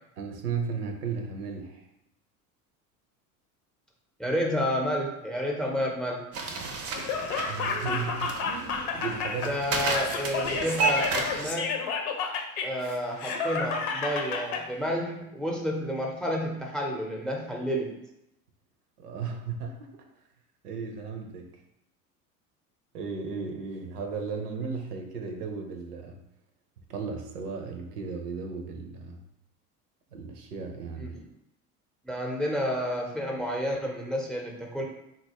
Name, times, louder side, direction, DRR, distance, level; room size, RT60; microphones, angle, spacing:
voice 1, 0.2-1.8 7.4-9.6 19.0-19.9 20.6-21.5 22.9-26.2 26.9-29.2 30.1-31.1, right 5 dB, 85° right, 4 dB, 0.7 m, -35 dB
voice 2, 4.2-6.3 9.4-11.8 12.6-18.0 31.0-31.2 32.0-34.8, equal, ahead, 0 dB, 0.7 m, -30 dB
sound 1, 6.3-11.5, right 4 dB, 35° right, 0.6 m, -32 dB
Laughter, 6.9-14.6, left 5 dB, 70° left, 0.8 m, -31 dB
3.9 x 2.3 x 2.9 m, 0.84 s
hypercardioid pair, 75°, 45 cm